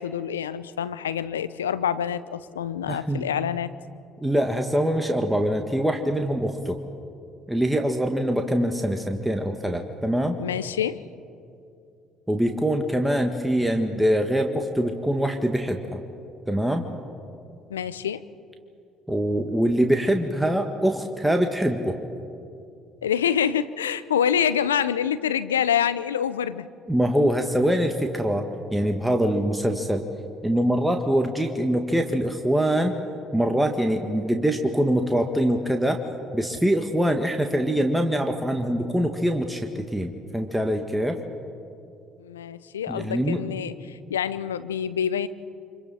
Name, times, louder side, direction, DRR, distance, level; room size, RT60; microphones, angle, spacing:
voice 1, 0.0-3.7 10.4-11.0 17.7-18.2 23.0-26.7 42.2-45.3, left 8 dB, 85° left, 15 dB, 0.6 m, -26 dB
voice 2, 2.9-3.3 4.2-6.8 7.5-10.4 12.3-16.0 16.5-16.8 19.1-22.0 26.9-28.4 28.7-30.0 30.4-33.0 33.3-36.0 36.3-41.2 42.9-43.4, equal, 5° right, 4 dB, 1.8 m, -24 dB
30.0 x 25.5 x 4.3 m, 2.5 s
hypercardioid pair, 55°, 0 cm